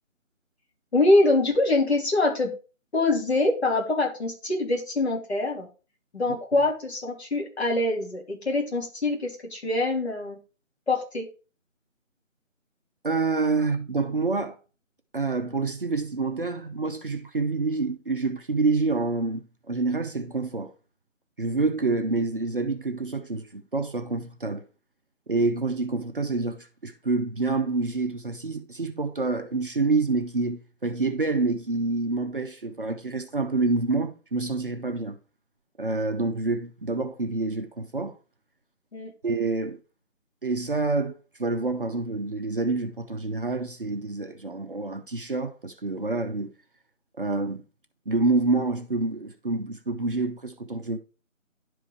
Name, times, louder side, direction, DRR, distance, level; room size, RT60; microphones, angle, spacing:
voice 1, 0.9-2.5 2.9-5.7 6.1-10.4 10.9-11.3 38.9-39.1, left 2 dB, 50° left, 3.2 m, -24 dB
voice 2, 13.0-14.6 15.1-20.7 21.4-24.6 25.3-35.2 35.8-38.1 39.2-39.8 40.4-46.5 47.2-47.6 48.1-51.0, right 3 dB, 40° right, 0.8 m, -27 dB
11.0 x 4.8 x 3.3 m
figure-of-eight pair, 165°, 40 cm